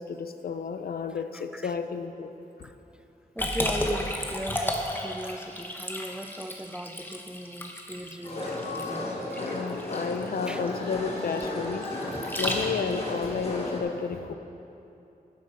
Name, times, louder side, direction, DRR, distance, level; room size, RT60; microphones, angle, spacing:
voice 1, 0.0-2.3 2.6-2.7 9.4-14.3, left 5 dB, 90° left, 8 dB, 0.6 m, -32 dB
voice 2, 1.3-1.7 2.6-2.7 3.4-9.6 10.5-10.6 12.1-12.2, equal, 5° right, 10 dB, 0.3 m, -38 dB
Liquid, 3.4-13.0, left 1 dB, 15° left, 1.0 m, -33 dB
sound 1, 8.2-13.8, left 1 dB, 40° left, 2.0 m, -34 dB
11.0 x 7.6 x 4.9 m, 2.8 s
wide cardioid pair, 95°, 15 cm